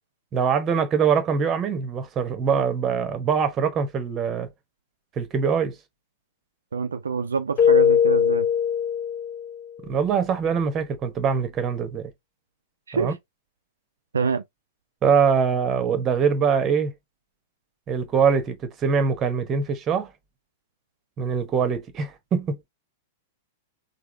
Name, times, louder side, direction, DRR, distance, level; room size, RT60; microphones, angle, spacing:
voice 1, 0.3-4.5 5.2-5.7 9.8-12.1 12.9-13.1 15.0-16.9 17.9-20.1 21.2-22.6, right 6 dB, 30° right, 0.9 m, -23 dB
voice 2, 6.7-8.5 12.9-13.2 14.1-14.4, right 5 dB, 80° right, 0.3 m, -26 dB
Keyboard (musical), 7.6-9.6, left 8 dB, 35° left, 0.7 m, -20 dB
3.6 x 2.0 x 3.2 m
figure-of-eight pair, 100°, 0 cm